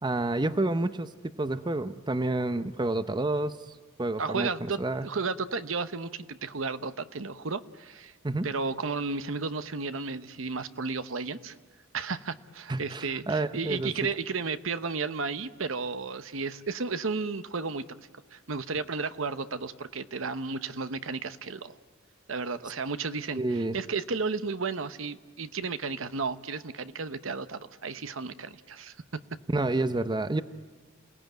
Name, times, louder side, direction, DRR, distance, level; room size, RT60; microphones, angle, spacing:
voice 1, 0.0-1.1 1.4-3.6 4.0-5.1 8.2-8.5 12.7-13.9 23.3-23.8 29.5-30.4, right 2 dB, 20° right, 12 dB, 0.7 m, -29 dB
voice 2, 4.2-8.1 8.4-11.6 11.9-17.8 18.3-21.8 22.3-29.0, right 4 dB, 70° right, 12 dB, 0.9 m, -33 dB
28.5 x 18.0 x 9.2 m, 1.5 s
head